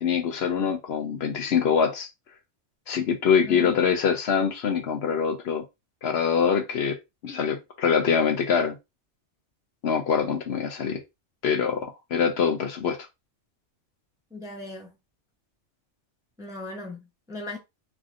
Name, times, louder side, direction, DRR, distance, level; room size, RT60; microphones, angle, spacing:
voice 1, 0.0-2.1 2.9-5.6 6.0-7.0 7.2-8.8 9.8-11.0 11.4-13.0, left 6 dB, 65° left, 0.8 m, -24 dB
voice 2, 14.3-14.9 16.4-17.6, left 2 dB, 5° right, 0.5 m, -38 dB
3.3 x 2.5 x 2.4 m
omnidirectional pair, 1.2 m